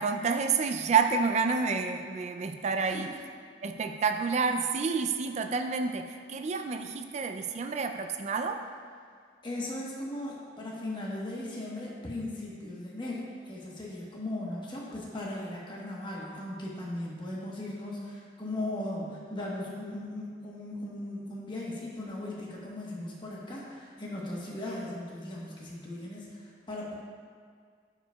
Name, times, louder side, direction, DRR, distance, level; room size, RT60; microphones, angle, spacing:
voice 1, 0.0-3.1 3.6-8.6, right 5 dB, 40° right, 5 dB, 0.3 m, -29 dB
voice 2, 2.8-3.1 9.4-27.0, left 1 dB, 25° left, -4 dB, 1.1 m, -38 dB
11.5 x 5.0 x 2.3 m, 2.1 s
head